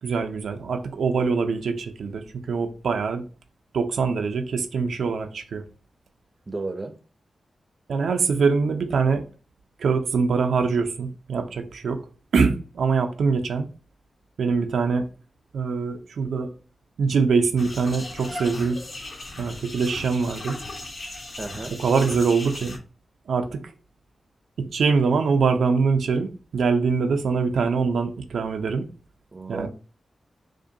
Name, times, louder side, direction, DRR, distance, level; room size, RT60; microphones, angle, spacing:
voice 1, 0.0-3.2 3.7-5.6 7.9-9.2 9.8-12.0 12.3-13.7 14.4-15.1 15.5-16.5 17.0-18.8 19.4-20.6 21.8-22.8 23.3-23.6 24.6-28.9 29.5-29.7, right 5 dB, 90° right, 0.4 m, -23 dB
voice 2, 6.5-6.9 21.4-21.7 29.3-29.7, right 3 dB, 30° right, 0.5 m, -32 dB
sound 1, 17.6-22.8, left 2 dB, 65° left, 1.8 m, -37 dB
4.9 x 2.2 x 2.8 m
wide cardioid pair, 110°, 0 cm